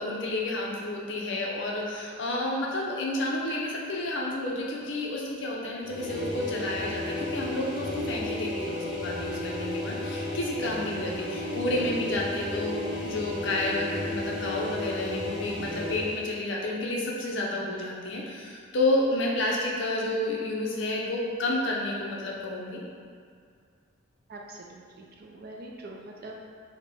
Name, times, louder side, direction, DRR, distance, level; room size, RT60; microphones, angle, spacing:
voice 1, 0.0-22.8, left 1 dB, 55° left, -3 dB, 0.6 m, -30 dB
sound 1, 5.8-16.2, left 1 dB, ahead, 1.1 m, -33 dB
voice 2, 24.3-26.4, right 2 dB, 45° right, -1 dB, 0.4 m, -44 dB
4.1 x 2.1 x 3.4 m, 2.2 s
head